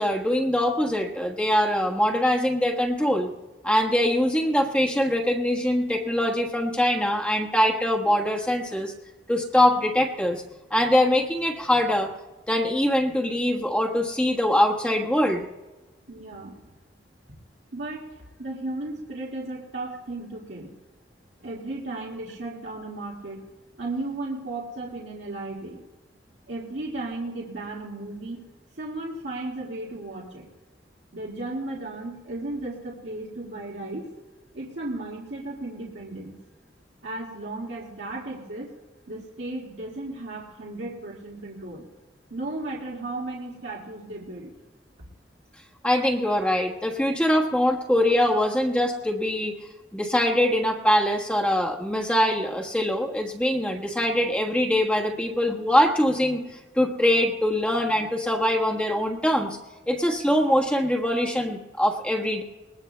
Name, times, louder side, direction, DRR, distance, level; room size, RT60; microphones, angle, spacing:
voice 1, 0.0-3.3 3.6-8.9 9.3-10.4 10.7-12.1 12.5-15.5 45.8-49.6 49.9-56.4 56.7-59.5 59.9-62.4, left 1 dB, 5° left, 1 dB, 1.3 m, -23 dB
voice 2, 16.1-16.6 17.7-18.1 18.4-20.7 21.4-23.5 23.8-25.8 26.5-28.4 28.8-30.5 31.1-34.1 34.5-36.4 37.0-38.7 39.1-41.9 42.3-44.5, right 2 dB, 85° right, -4 dB, 2.0 m, -35 dB
21.5 x 20.0 x 2.2 m, 1.1 s
head